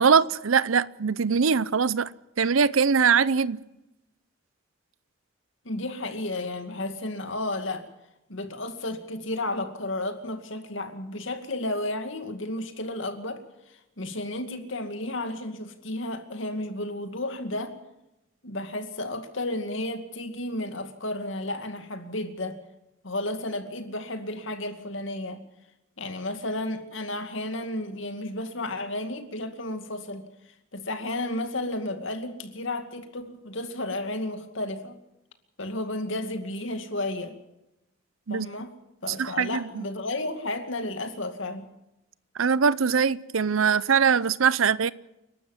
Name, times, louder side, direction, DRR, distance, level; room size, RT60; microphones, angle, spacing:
voice 1, 0.0-2.1 2.4-3.6 38.3-38.5 39.2-39.8 42.4-44.9, right 6 dB, 85° right, 0.7 m, -22 dB
voice 2, 5.6-7.9 8.3-17.7 18.4-22.6 23.0-25.4 26.0-30.2 30.7-35.0 35.6-37.4 38.3-38.7 39.0-41.7, left 1 dB, 70° left, 2.4 m, -32 dB
29.5 x 12.5 x 7.3 m
head